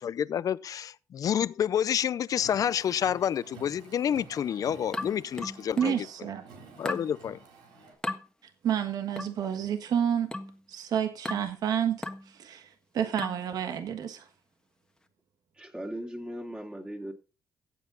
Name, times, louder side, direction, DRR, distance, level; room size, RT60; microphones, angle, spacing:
voice 1, 0.0-6.1 6.8-7.4, left 9 dB, 60° left, 0.6 m, -29 dB
Car, 2.3-7.9, right 5 dB, 90° right, 3.7 m, -51 dB
sound 1, 4.9-6.0 6.8-7.1 8.0-8.2 9.2-9.4 10.3-10.6 11.2-11.5 12.0-12.3 13.2-13.5, left 2 dB, 10° left, 1.5 m, -36 dB
voice 2, 5.8-6.4 8.6-10.3 10.7-14.3, right 9 dB, 70° right, 1.5 m, -30 dB
voice 3, 15.6-17.1, right 1 dB, 15° right, 2.7 m, -38 dB
15.0 x 8.2 x 4.0 m
cardioid pair, 80°, 7 cm